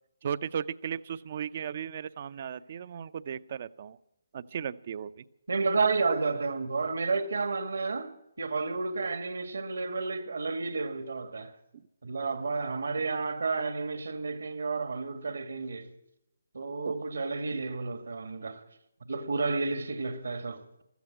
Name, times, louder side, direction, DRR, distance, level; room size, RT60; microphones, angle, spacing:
voice 1, 0.2-4.0 4.3-5.2, right 8 dB, 45° right, 0.6 m, -36 dB
voice 2, 5.5-8.1 8.4-11.6 12.0-15.9 16.5-18.6 19.1-20.8, right 4 dB, 70° right, 2.0 m, -31 dB
15.5 x 14.0 x 6.1 m
figure-of-eight pair, 145°, 0 cm